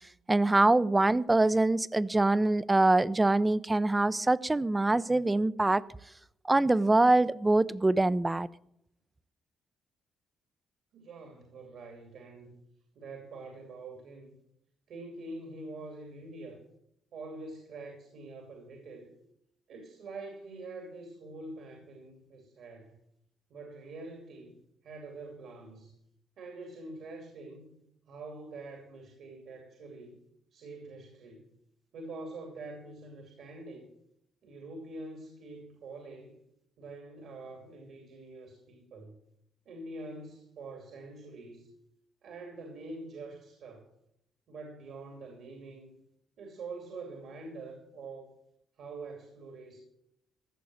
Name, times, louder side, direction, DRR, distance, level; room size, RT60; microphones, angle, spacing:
voice 1, 0.3-5.8 6.5-8.5, right 2 dB, 15° right, 18 dB, 0.5 m, -24 dB
voice 2, 10.9-12.6 12.9-14.4 14.9-16.6 17.1-19.1 19.7-22.9 23.5-24.6 24.8-25.9 26.4-27.8 28.1-30.2 30.5-31.5 31.9-33.9 34.4-36.4 36.8-39.1 39.7-41.7 42.2-43.9 44.5-45.9 46.4-48.3 48.8-49.8, right 3 dB, 70° right, 4 dB, 2.8 m, -45 dB
14.5 x 6.9 x 7.7 m, 0.75 s
cardioid pair, 90°, 0 cm